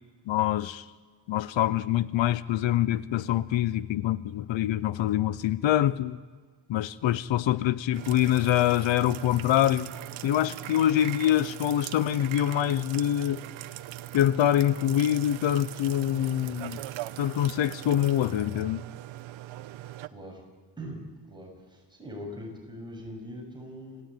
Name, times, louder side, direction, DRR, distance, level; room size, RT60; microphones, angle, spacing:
voice 1, 0.3-0.9 1.3-6.2 6.7-9.9 10.2-13.4 14.1-16.8 17.2-18.8, left 12 dB, 75° left, 17 dB, 0.8 m, -25 dB
sound 1, 7.9-20.1, right 14 dB, 90° right, 1.0 m, -40 dB
voice 2, 20.1-20.4 20.8-24.0, equal, 10° right, -1 dB, 7.2 m, -41 dB
29.0 x 16.0 x 9.2 m, 1.5 s
wide cardioid pair, 160°, 45 cm